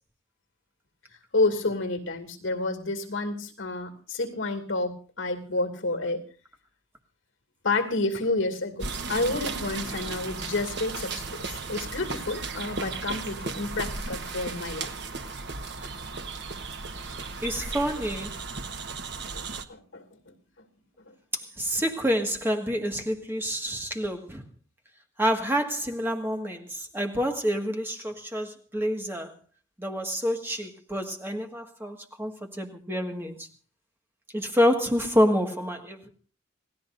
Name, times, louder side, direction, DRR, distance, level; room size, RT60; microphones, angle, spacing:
voice 1, 1.3-6.2 7.6-14.9 19.3-20.3 21.1-21.2, left 2 dB, 80° left, 2.5 m, -30 dB
sound 1, 8.8-19.6, right 4 dB, 60° right, 1.2 m, -35 dB
voice 2, 17.4-18.4 21.3-24.4 25.2-29.3 29.8-33.5 34.3-36.1, equal, 10° right, 1.8 m, -28 dB
28.5 x 17.5 x 2.6 m
head